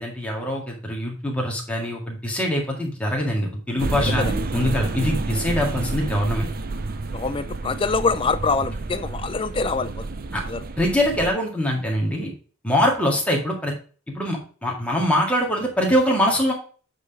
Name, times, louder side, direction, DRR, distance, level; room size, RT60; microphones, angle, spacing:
voice 1, 0.0-4.2 4.5-6.5 10.3-10.4 10.8-12.3 12.6-13.7 14.2-16.5, left 1 dB, 5° left, -1 dB, 1.9 m, -23 dB
sound 1, 3.8-11.3, right 2 dB, 40° right, 0.6 m, -29 dB
voice 2, 4.0-4.3 7.1-10.1 10.5-10.6, left 4 dB, 25° left, 11 dB, 0.5 m, -25 dB
8.1 x 3.8 x 4.8 m, 0.40 s
head